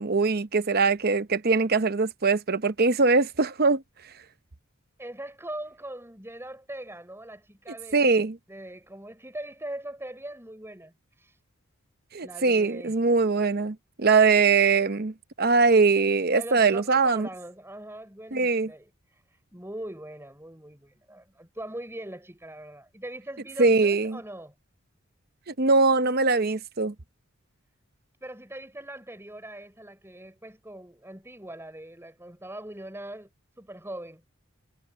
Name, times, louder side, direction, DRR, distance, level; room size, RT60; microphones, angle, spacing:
voice 1, 0.0-3.8 7.9-8.4 12.1-17.3 18.3-18.7 23.6-24.2 25.5-26.9, right 4 dB, 45° right, 0.8 m, -22 dB
voice 2, 5.0-11.4 12.2-12.9 16.3-24.5 28.2-33.3 33.6-34.2, right 1 dB, 10° right, 6.0 m, -41 dB
head